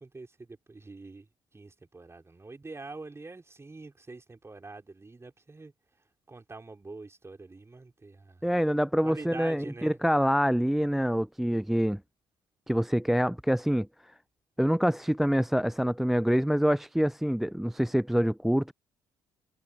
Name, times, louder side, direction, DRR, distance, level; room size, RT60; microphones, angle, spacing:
voice 1, 0.0-5.7 6.3-8.5 9.0-10.0, right 3 dB, 20° right, 4.5 m, -45 dB
voice 2, 8.4-12.0 12.7-13.9 14.6-18.7, equal, ahead, 0.4 m, -26 dB
figure-of-eight pair, 50°, 12 cm